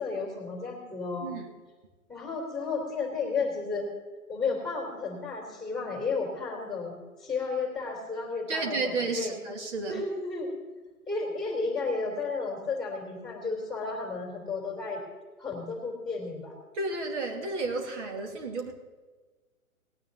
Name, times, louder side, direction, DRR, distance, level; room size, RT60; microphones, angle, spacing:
voice 1, 0.0-1.3 2.1-3.8 4.3-9.3 9.9-10.5 11.1-15.0 15.4-16.5, left 4 dB, ahead, -4 dB, 3.0 m, -33 dB
voice 2, 1.2-1.5 8.5-10.0 16.7-18.7, right 3 dB, 50° right, 3 dB, 2.8 m, -32 dB
18.5 x 9.4 x 4.0 m, 1.3 s
figure-of-eight pair, 130°, 44 cm